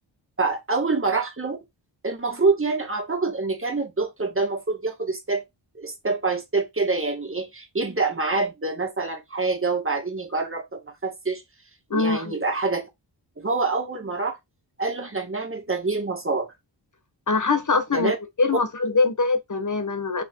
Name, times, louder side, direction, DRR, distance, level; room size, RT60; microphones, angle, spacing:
voice 1, 0.4-1.6 2.0-5.4 5.8-11.4 11.9-12.9 13.4-14.4 14.8-16.5 17.9-18.2, right 3 dB, 25° right, 2.0 m, -26 dB
voice 2, 11.9-12.3 17.3-18.1 18.4-20.2, left 3 dB, 40° left, 1.4 m, -23 dB
6.1 x 3.5 x 4.6 m
wide cardioid pair, 85°, 46 cm